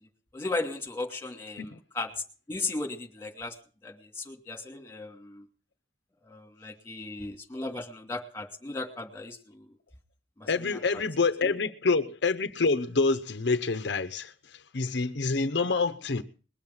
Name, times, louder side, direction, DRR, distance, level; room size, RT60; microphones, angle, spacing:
voice 1, 0.3-2.1 2.5-3.6 3.8-5.5 6.2-9.7 10.4-11.0 11.4-11.5, left 2 dB, 15° left, 2.7 m, -36 dB
voice 2, 10.5-16.2, left 4 dB, 65° left, 0.8 m, -27 dB
21.0 x 7.3 x 7.9 m
head